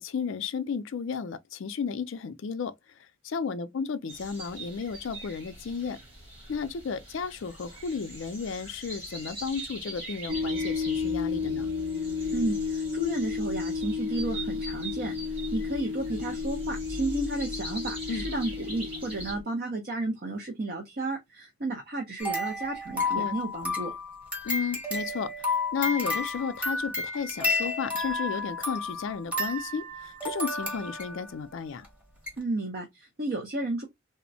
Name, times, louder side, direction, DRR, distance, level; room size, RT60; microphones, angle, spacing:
voice 1, 0.0-2.7 3.2-6.0 6.5-11.7 18.1-18.3 23.1-23.4 24.4-25.3 25.7-31.9, left 6 dB, 60° left, 0.4 m, -33 dB
choir of birds in spring dawn, 4.1-19.3, right 2 dB, 25° right, 1.2 m, -43 dB
sound 1, 10.3-19.4, left 5 dB, 75° right, 1.3 m, -32 dB
voice 2, 12.3-15.2 15.5-23.9 32.4-33.9, right 2 dB, 45° right, 0.6 m, -32 dB
sound 2, 22.2-31.4 31.8-31.9 32.3-32.4, left 2 dB, 5° right, 0.8 m, -31 dB
3.4 x 2.0 x 2.6 m
head